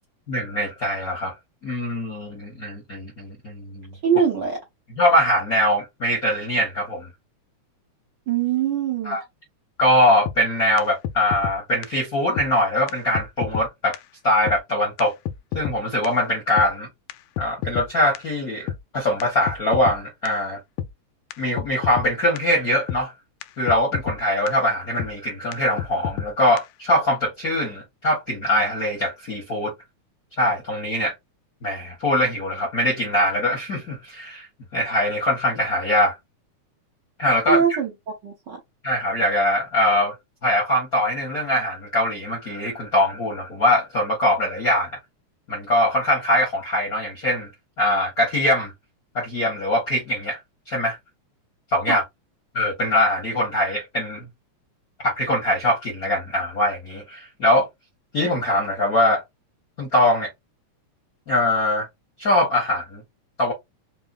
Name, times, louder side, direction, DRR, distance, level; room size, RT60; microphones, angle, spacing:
voice 1, 0.3-1.3 1.6-3.9 5.0-7.1 9.0-9.2 9.8-14.0 14.2-15.1 15.5-16.9 17.4-20.6 21.4-23.1 23.6-29.7 30.4-31.1 31.6-34.5 34.7-36.2 37.2-37.6 38.8-40.2 40.4-44.9 45.5-47.5 47.8-48.7 49.1-50.4 50.7-51.0 51.7-52.0 52.5-54.3 55.0-57.7 58.1-59.2 59.8-60.3 61.3-61.9 62.2-63.0 63.4-63.5, left 1 dB, 60° left, 0.9 m, -22 dB
voice 2, 4.0-4.6 8.3-9.2 37.5-37.9 38.2-38.6 51.9-52.0, right 8 dB, 75° right, 1.0 m, -22 dB
sound 1, 10.3-10.4 10.8-10.9 11.0-11.6 11.8-11.9 12.4-12.5 12.9-13.0 13.1-13.7 13.9-14.0 14.5-14.6 15.0-15.1 15.3-15.8 16.0-16.1 16.6-16.7 17.1-17.9 18.1-18.2 18.7-18.8 19.2-19.3 19.5-20.0 20.3-20.4 20.8-20.9 21.3-21.4 21.6-22.1 22.4-22.5 22.9-23.0 23.4-23.5 23.7-24.2 24.5-24.6 25.0-25.1 25.5-25.6 25.8-26.3 26.6-26.7, left 9 dB, 90° left, 2.1 m, -29 dB
5.3 x 2.1 x 2.4 m
omnidirectional pair, 3.5 m